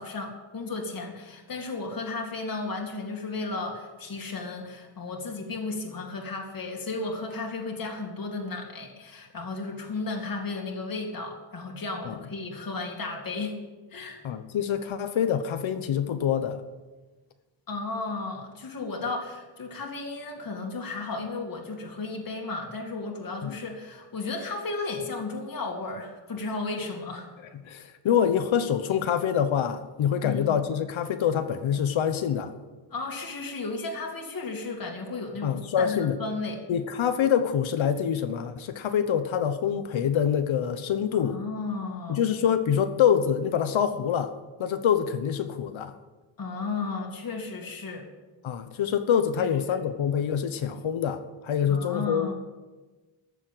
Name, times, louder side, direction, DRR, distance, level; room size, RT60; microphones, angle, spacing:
voice 1, 0.0-13.6 13.9-14.2 17.7-27.3 30.2-30.6 32.9-36.6 41.1-42.2 46.4-48.1 49.4-49.8 51.7-52.3, left 3 dB, 45° left, 0 dB, 2.3 m, -34 dB
voice 2, 14.2-16.6 23.4-23.5 27.7-32.5 35.4-36.2 36.7-41.4 42.1-44.3 44.6-45.9 48.4-52.3, left 8 dB, 85° left, 9 dB, 1.1 m, -25 dB
14.0 x 7.4 x 8.9 m, 1.2 s
wide cardioid pair, 150°, 46 cm